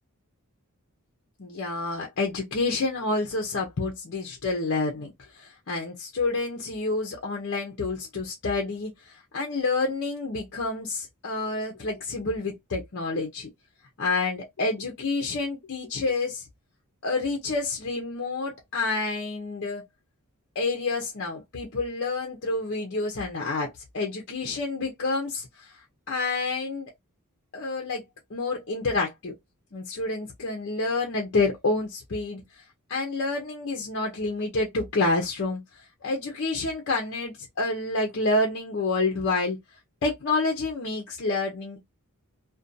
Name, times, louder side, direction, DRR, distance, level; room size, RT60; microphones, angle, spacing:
voice 1, 1.4-13.5 14.0-16.5 17.0-19.8 20.6-26.9 27.5-28.0 28.3-29.3 29.7-32.6 32.9-39.6 40.0-41.8, left 3 dB, 55° left, 0.6 m, -28 dB
2.6 x 2.2 x 2.6 m
head